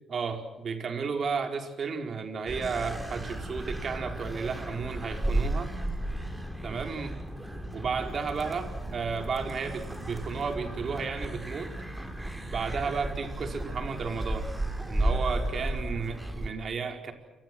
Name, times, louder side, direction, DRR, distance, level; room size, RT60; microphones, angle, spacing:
voice 1, 0.1-5.7 6.6-7.2 7.7-11.7 12.5-14.5 14.8-17.1, right 5 dB, 50° right, 5 dB, 4.8 m, -33 dB
sound 1, 2.5-16.5, right 1 dB, 10° right, 4.8 m, -34 dB
29.0 x 26.0 x 6.3 m, 1.1 s
cardioid pair, 90°, 0 cm